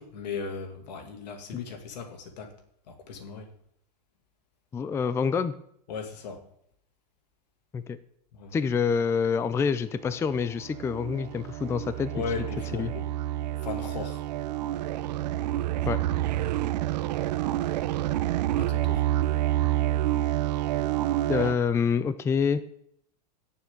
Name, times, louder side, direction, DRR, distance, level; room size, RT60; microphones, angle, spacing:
voice 1, 0.0-2.5 2.9-3.5 5.9-6.4 8.3-8.6 12.1-13.1 13.6-14.2 18.6-19.1, left 5 dB, 80° left, 5 dB, 2.5 m, -37 dB
voice 2, 4.7-5.5 7.7-8.0 8.5-12.1 12.7-12.9 15.9-16.0 21.3-22.6, left 6 dB, 10° left, 13 dB, 0.4 m, -26 dB
sound 1, 10.1-21.6, right 14 dB, 75° right, 0.6 m, -28 dB
16.5 x 7.1 x 3.8 m, 0.70 s
supercardioid pair, 135°, 21 cm